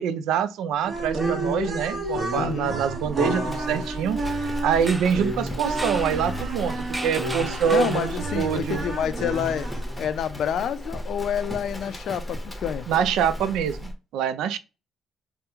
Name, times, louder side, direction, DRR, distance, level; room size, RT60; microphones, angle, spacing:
voice 1, 0.0-8.1 8.3-8.8 12.9-14.6, right 8 dB, 85° right, 0.3 m, -25 dB
sound 1, 0.8-10.1, right 2 dB, 50° right, 1.0 m, -30 dB
Livestock farm animals working animals, 0.9-14.0, equal, 10° left, 0.8 m, -36 dB
voice 2, 2.3-2.7 7.7-9.7 10.0-12.9, left 8 dB, 70° left, 0.3 m, -28 dB
sound 2, 4.7-8.6, right 1 dB, 10° right, 0.4 m, -37 dB
2.9 x 2.1 x 3.4 m
cardioid pair, 90°, 0 cm